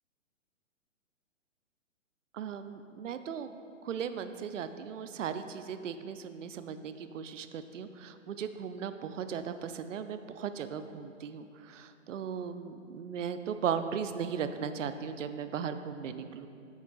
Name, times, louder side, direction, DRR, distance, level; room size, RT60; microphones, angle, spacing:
voice 1, 2.3-3.5 3.8-16.5, right 7 dB, 75° right, 10 dB, 0.5 m, -37 dB
9.4 x 7.1 x 2.3 m, 2.5 s
figure-of-eight pair, 130°, 38 cm